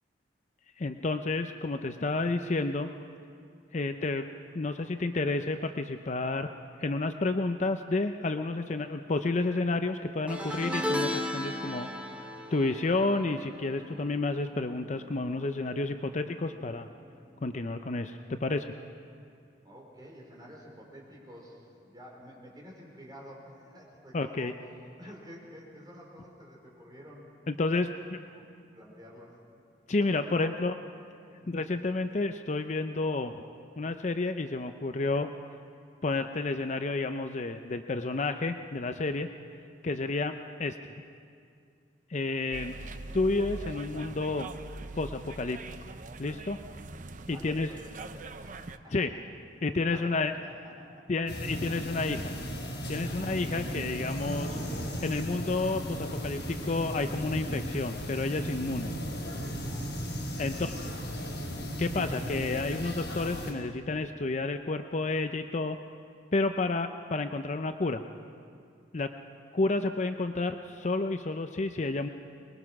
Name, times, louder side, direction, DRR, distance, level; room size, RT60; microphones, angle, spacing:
voice 1, 0.8-2.9 3.7-4.3 4.5-6.5 6.8-11.9 12.5-16.9 17.4-18.7 24.1-24.5 27.5-28.2 29.9-30.8 31.5-33.4 33.8-35.3 36.0-39.3 39.8-40.8 42.1-42.7 43.1-44.5 45.0-45.6 46.2-46.6 47.3-47.7 48.9-49.1 49.6-50.3 51.1-52.3 52.9-54.6 55.0-59.0 60.4-60.9 61.8-65.8 66.3-68.0 68.9-69.1 69.5-72.1, left 3 dB, 40° left, 7 dB, 0.6 m, -30 dB
sound 1, 10.3-15.7 15.9-16.3 17.5-17.6, left 1 dB, 10° right, 2.0 m, -36 dB
voice 2, 19.6-24.6 25.0-27.5 28.3-28.4 28.7-29.3 30.2-30.5 31.4-31.7 47.3-49.1 49.8-50.1 50.4-51.1 53.1-53.4 59.7-60.1, equal, 25° right, -2 dB, 4.6 m, -50 dB
sound 2, 42.5-48.8, right 3 dB, 45° right, 0.7 m, -42 dB
sound 3, 51.3-63.5, equal, 80° left, 4.6 m, -36 dB
23.5 x 21.0 x 6.1 m, 2.3 s
head